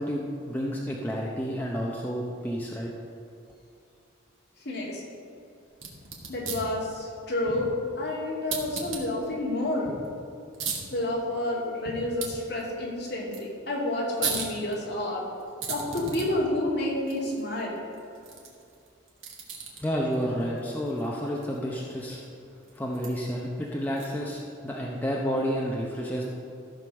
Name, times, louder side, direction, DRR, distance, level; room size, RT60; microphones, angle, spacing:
voice 1, 0.0-2.9 19.8-22.2 22.7-26.3, equal, 10° left, -3 dB, 0.8 m, -30 dB
voice 2, 4.6-5.0 6.3-9.9 10.9-15.2 15.7-17.8, left 1 dB, 55° left, -4 dB, 2.5 m, -29 dB
sound 1, 5.7-24.4, right 5 dB, 75° right, 1.8 m, -40 dB
14.0 x 5.2 x 6.4 m, 2.5 s
head